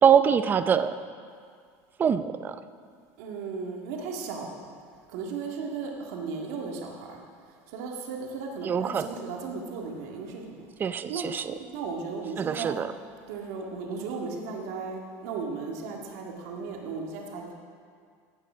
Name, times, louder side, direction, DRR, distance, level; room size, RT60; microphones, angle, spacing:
voice 1, 0.0-0.9 2.0-2.6 8.6-9.1 10.8-11.5 12.4-12.9, right 7 dB, 25° right, 12 dB, 0.5 m, -23 dB
voice 2, 3.2-4.7 5.1-7.2 7.5-10.6 11.1-12.8 13.3-17.5, right 4 dB, 75° right, 0 dB, 1.9 m, -36 dB
15.5 x 7.0 x 6.1 m, 2.1 s
cardioid pair, 145°, 8 cm